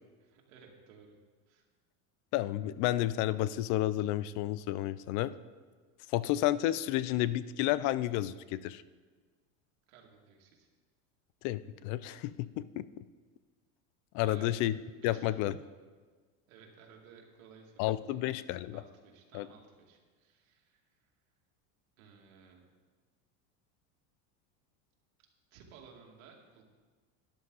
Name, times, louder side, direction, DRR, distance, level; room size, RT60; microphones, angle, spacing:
voice 1, 0.2-1.2 1.5-1.6 9.9-10.7 14.2-14.5 15.0-15.6 16.5-17.9 18.7-20.8 22.0-22.6 25.5-26.6, right 6 dB, 90° right, 0 dB, 2.3 m, -56 dB
voice 2, 2.3-5.3 6.1-8.8 11.4-12.9 14.1-14.7 15.0-15.5 17.8-18.8 19.3-19.5, left 14 dB, 50° left, 17 dB, 0.5 m, -31 dB
13.0 x 10.5 x 4.0 m, 1.4 s
supercardioid pair, 145°, 40 cm